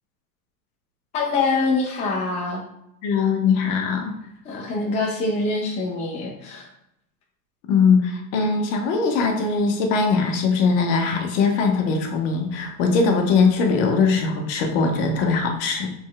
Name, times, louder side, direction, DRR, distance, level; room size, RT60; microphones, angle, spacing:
voice 1, 1.1-2.6 4.4-6.7, left 3 dB, 15° left, -2 dB, 0.5 m, -24 dB
voice 2, 3.0-4.2 7.7-15.9, left 4 dB, 50° left, 3 dB, 0.8 m, -21 dB
4.0 x 3.2 x 2.3 m, 0.82 s
hypercardioid pair, 110°, 47 cm